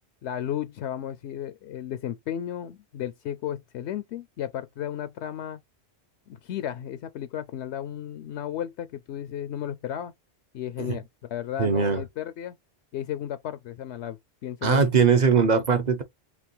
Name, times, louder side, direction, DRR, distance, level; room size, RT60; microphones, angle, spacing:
voice 1, 0.2-5.6 6.3-10.1 10.5-12.6 12.9-15.0 15.5-15.6, left 10 dB, 80° left, 0.9 m, -34 dB
voice 2, 11.6-12.0 14.6-16.0, right 5 dB, 45° right, 0.8 m, -21 dB
5.1 x 3.0 x 3.1 m
omnidirectional pair, 1.1 m